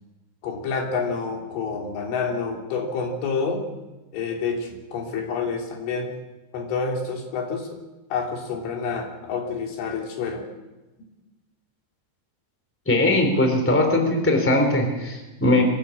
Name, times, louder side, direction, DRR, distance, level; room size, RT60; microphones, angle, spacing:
voice 1, 0.4-3.7 4.1-6.1 6.5-7.8 8.1-10.5, left 5 dB, 85° left, 1 dB, 5.6 m, -28 dB
voice 2, 12.8-15.6, left 1 dB, 5° left, 3 dB, 2.9 m, -20 dB
24.0 x 14.0 x 8.7 m, 1.1 s
omnidirectional pair, 5.4 m